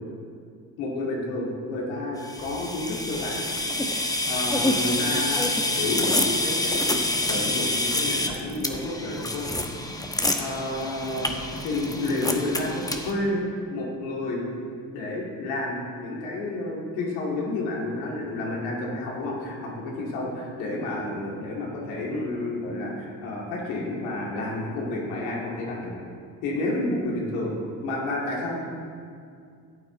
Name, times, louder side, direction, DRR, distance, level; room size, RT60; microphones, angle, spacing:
voice 1, 0.8-3.5 4.3-7.0 7.3-9.5 10.3-11.3 11.6-13.4 13.7-14.4 14.9-25.9 26.4-27.5 27.8-28.5, left 2 dB, 80° left, -2 dB, 2.3 m, -30 dB
sound 1, 2.2-13.1, left 1 dB, 10° left, 1.0 m, -27 dB
13.5 x 8.5 x 3.8 m, 2.3 s
hypercardioid pair, 60°, 42 cm